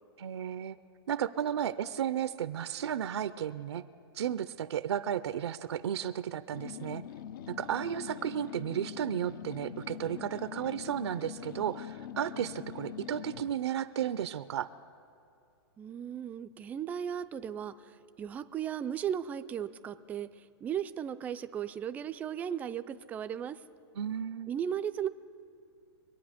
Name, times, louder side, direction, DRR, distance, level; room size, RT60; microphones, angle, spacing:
voice 1, 0.2-0.8 1.1-3.9 4.1-7.0 7.5-14.7 24.0-24.5, right 9 dB, 80° right, 12 dB, 0.5 m, -33 dB
sound 1, 6.5-13.6, left 10 dB, 50° left, 0.4 m, -44 dB
voice 2, 15.8-23.6 24.5-25.1, right 9 dB, 10° right, 10 dB, 0.3 m, -36 dB
24.5 x 8.9 x 5.1 m, 2.6 s
hypercardioid pair, 150°, 14 cm